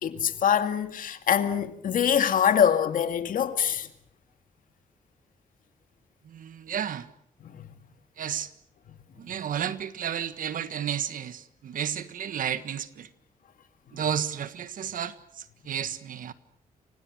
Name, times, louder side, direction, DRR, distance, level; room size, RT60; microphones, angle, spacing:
voice 1, 0.0-3.9 7.4-7.6, left 8 dB, 75° left, 2.2 m, -24 dB
voice 2, 6.2-7.1 8.2-8.5 9.2-13.1 13.9-16.3, right 9 dB, 75° right, 1.6 m, -32 dB
29.5 x 25.5 x 6.4 m
wide cardioid pair, 140°, 14 cm